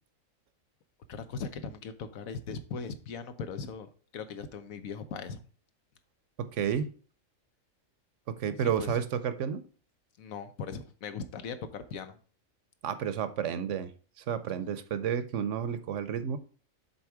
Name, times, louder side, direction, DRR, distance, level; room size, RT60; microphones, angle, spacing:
voice 1, 1.1-5.4 6.7-6.8 8.5-9.0 10.2-12.2, left 5 dB, 90° left, 10 dB, 1.3 m, -39 dB
voice 2, 6.4-6.9 8.3-9.6 12.8-16.4, right 8 dB, 70° right, 12 dB, 1.0 m, -31 dB
7.1 x 4.0 x 4.7 m, 0.40 s
omnidirectional pair, 1.4 m